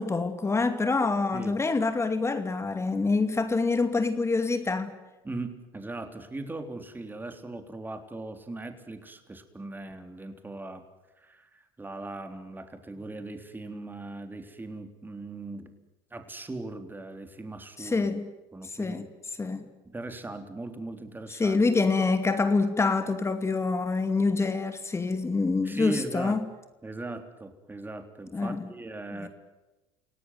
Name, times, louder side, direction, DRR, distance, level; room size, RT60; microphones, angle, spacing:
voice 1, 0.0-5.0 17.8-18.3 18.6-19.0 19.4-19.7 21.3-26.4 28.3-28.7 29.2-29.3, left 3 dB, 20° left, 2.5 m, -26 dB
voice 2, 5.2-10.9 11.2-15.7 16.1-18.1 18.5-19.1 19.8-21.6 25.6-26.4 26.8-29.3, right 2 dB, 15° right, 3.7 m, -39 dB
29.0 x 18.0 x 9.5 m
supercardioid pair, 85°, 12 cm